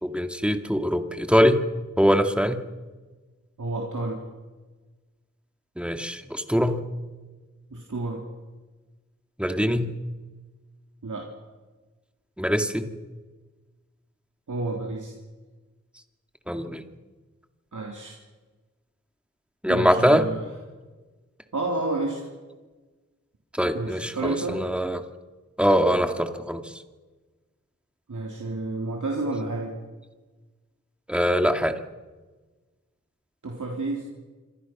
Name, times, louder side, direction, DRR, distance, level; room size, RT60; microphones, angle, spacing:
voice 1, 0.0-1.6 2.0-2.6 5.8-6.8 9.4-10.0 12.4-12.9 16.5-16.8 19.6-20.2 23.5-25.0 25.6-26.6 31.1-31.8, equal, 5° right, 6 dB, 2.3 m, -22 dB
voice 2, 3.6-4.2 7.7-8.2 11.0-11.3 14.5-15.1 17.7-18.2 19.7-20.4 21.5-22.3 23.7-24.6 28.1-29.7 33.4-34.0, right 2 dB, 90° right, -1 dB, 3.6 m, -30 dB
26.5 x 26.5 x 6.2 m, 1.3 s
wide cardioid pair, 65°, 30 cm